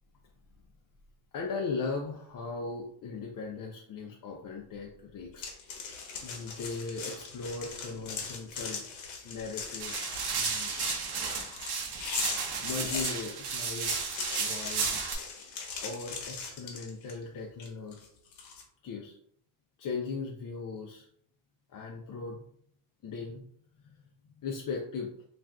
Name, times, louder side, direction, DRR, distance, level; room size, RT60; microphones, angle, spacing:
voice 1, 1.3-5.5 6.2-8.9 9.2-10.7 12.6-14.0 14.4-15.0 15.8-18.0 18.8-19.2 19.8-21.1 21.7-22.4 23.0-23.4 23.8-24.0 24.4-25.2, left 4 dB, 45° left, 0 dB, 0.6 m, -38 dB
sound 1, 5.4-13.1 13.7-17.2 17.6-18.6, left 5 dB, 80° left, 0.8 m, -40 dB
sound 2, 9.8-15.2, right 5 dB, 60° right, 0.8 m, -33 dB
2.5 x 2.4 x 3.3 m, 0.64 s
cardioid pair, 75°, 46 cm